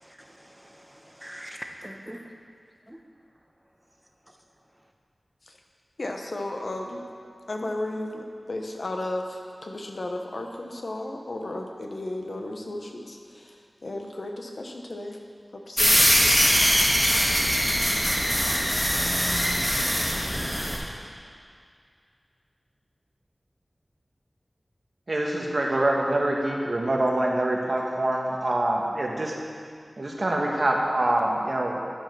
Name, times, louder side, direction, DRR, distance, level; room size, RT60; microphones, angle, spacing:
voice 1, 0.3-2.3 2.9-3.0, equal, 10° right, 2 dB, 0.9 m, -42 dB
voice 2, 6.0-7.0 7.5-15.2 15.5-16.3, left 1 dB, 70° left, 2 dB, 0.9 m, -34 dB
sound 1, 15.8-20.8, equal, 15° left, 1.9 m, -22 dB
voice 3, 25.1-29.3 30.0-31.9, right 1 dB, 60° right, -1 dB, 1.3 m, -25 dB
10.0 x 5.0 x 6.1 m, 2.2 s
wide cardioid pair, 60°, 0 cm